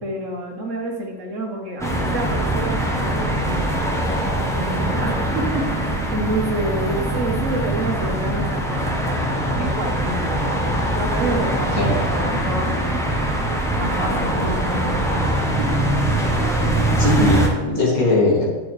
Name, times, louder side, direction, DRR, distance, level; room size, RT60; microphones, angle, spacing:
voice 1, 0.0-13.0 13.7-16.9, right 1 dB, 60° right, 1 dB, 1.5 m, -29 dB
sound 1, 1.8-17.5, right 1 dB, 5° left, 0.8 m, -22 dB
voice 2, 17.0-18.5, left 2 dB, 75° left, -3 dB, 2.4 m, -19 dB
9.2 x 6.7 x 3.3 m, 1.3 s
omnidirectional pair, 1.5 m